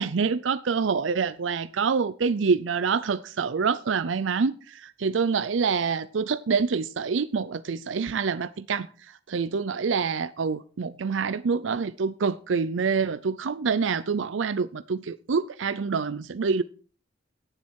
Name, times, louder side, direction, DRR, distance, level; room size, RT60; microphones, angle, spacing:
voice 1, 0.0-8.9 9.3-16.6, right 5 dB, 90° right, 0.5 m, -26 dB
16.5 x 7.5 x 4.7 m
head